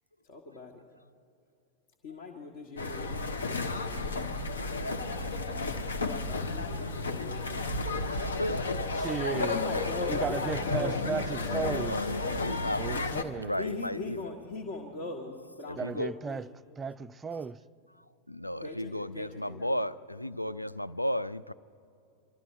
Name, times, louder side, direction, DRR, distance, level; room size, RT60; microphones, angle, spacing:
voice 1, 0.3-0.7 2.0-4.2 6.0-7.7 9.5-11.8 13.6-16.5 18.6-19.8, left 3 dB, 50° left, 1.4 m, -40 dB
sound 1, 2.8-13.2, left 3 dB, 70° left, 0.8 m, -32 dB
voice 2, 9.0-9.6 10.1-12.0 12.8-13.6 15.8-16.5 16.8-17.6, right 5 dB, 20° right, 0.4 m, -35 dB
voice 3, 11.9-14.2 15.7-16.1 18.3-21.5, left 1 dB, 90° left, 0.4 m, -34 dB
25.0 x 12.5 x 4.4 m
figure-of-eight pair, 90°, 0 cm